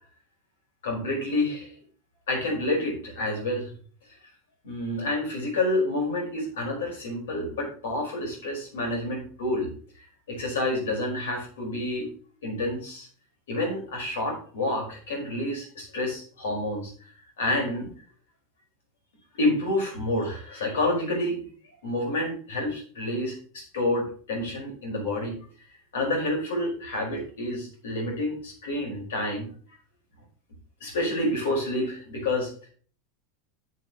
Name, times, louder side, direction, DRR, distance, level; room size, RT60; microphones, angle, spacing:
voice 1, 0.8-1.7 2.3-3.7 4.6-9.7 10.3-12.1 12.4-13.1 13.5-16.9 17.4-17.9 19.3-21.4 21.8-25.3 25.9-29.5 30.8-32.7, left 1 dB, 90° left, 0 dB, 4.8 m, -28 dB
11.5 x 6.5 x 3.0 m, 0.43 s
supercardioid pair, 120°, 0 cm